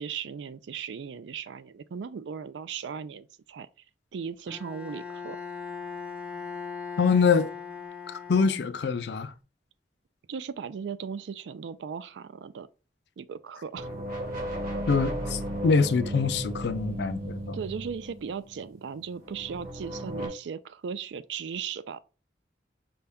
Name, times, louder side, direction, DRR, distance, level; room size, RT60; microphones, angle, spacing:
voice 1, 0.0-3.7 4.1-5.4 10.3-12.7 13.2-13.9 17.5-22.0, right 6 dB, 85° right, 0.4 m, -37 dB
Bowed string instrument, 4.5-9.0, left 5 dB, 5° right, 0.4 m, -39 dB
voice 2, 7.0-7.5 8.1-9.3 14.9-17.6, left 5 dB, 75° left, 0.4 m, -25 dB
sound 1, 13.8-18.7 19.2-20.3, right 1 dB, 50° right, 1.3 m, -35 dB
5.3 x 2.2 x 3.4 m
head